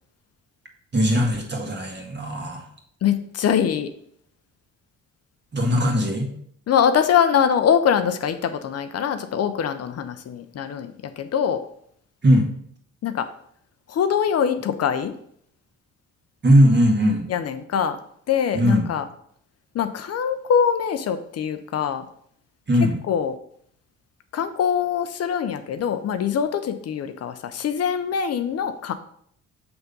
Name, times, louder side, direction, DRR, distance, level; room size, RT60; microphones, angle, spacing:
voice 1, 0.9-2.7 5.5-6.3 12.2-12.5 16.4-17.3 18.5-18.8 22.7-23.0, equal, 35° right, 1 dB, 1.7 m, -19 dB
voice 2, 3.0-3.9 6.7-11.6 13.0-13.3 13.9-15.1 17.3-18.0 18.3-19.1 19.7-22.1 22.8-23.3 24.3-28.9, left 8 dB, 55° left, 9 dB, 0.6 m, -23 dB
7.0 x 3.5 x 5.3 m, 0.65 s
cardioid pair, 90°, 30 cm